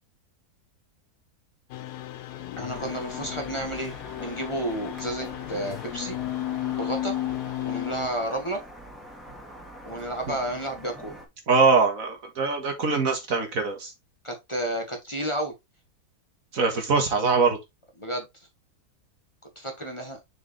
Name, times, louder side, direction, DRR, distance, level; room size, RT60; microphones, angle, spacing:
sound 1, 1.7-8.1, left 14 dB, 85° left, 1.2 m, -34 dB
voice 1, 2.6-6.2 6.8-7.1 7.6-8.6 9.8-11.2 14.2-15.5 18.0-18.3 19.5-20.2, right 1 dB, 20° left, 1.4 m, -31 dB
sound 2, 2.7-11.3, equal, ahead, 1.9 m, -44 dB
voice 2, 11.5-13.9 16.5-17.6, right 4 dB, 60° right, 1.8 m, -23 dB
6.7 x 4.8 x 3.3 m
omnidirectional pair, 1.6 m